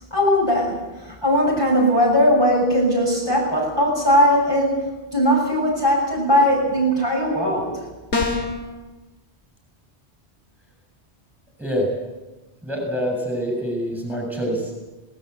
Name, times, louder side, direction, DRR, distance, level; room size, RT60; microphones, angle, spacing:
voice 1, 0.1-4.8 5.1-7.7, equal, 20° left, -3 dB, 6.6 m, -19 dB
sound 1, 8.1-8.7, left 3 dB, 90° left, 2.9 m, -23 dB
voice 2, 12.6-14.7, equal, ahead, 1 dB, 7.3 m, -25 dB
25.5 x 19.0 x 8.2 m, 1.1 s
omnidirectional pair, 1.1 m